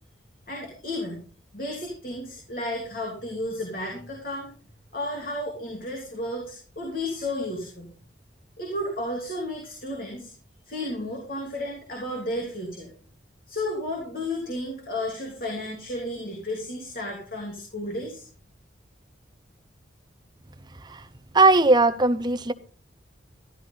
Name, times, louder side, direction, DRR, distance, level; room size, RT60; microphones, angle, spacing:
voice 1, 0.5-1.2 1.5-4.5 4.9-7.9 8.6-10.3 10.7-12.9 13.5-18.2, left 1 dB, 45° left, 3.1 m, -32 dB
voice 2, 21.3-22.5, right 3 dB, 20° right, 0.6 m, -18 dB
12.5 x 12.5 x 3.9 m
head